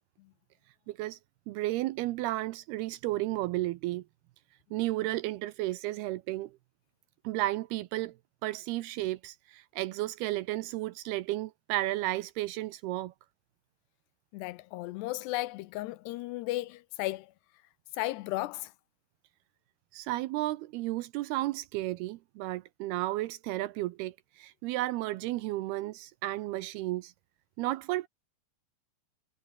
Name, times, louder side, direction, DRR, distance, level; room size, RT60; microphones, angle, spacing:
voice 1, 0.9-1.2 1.5-4.0 4.7-6.6 7.2-8.2 8.4-13.1 19.9-27.1 27.6-28.1, right 17 dB, 80° right, 2.3 m, -33 dB
voice 2, 14.3-17.3 17.9-18.7, left 18 dB, 80° left, 2.5 m, -35 dB
omnidirectional pair, 5.2 m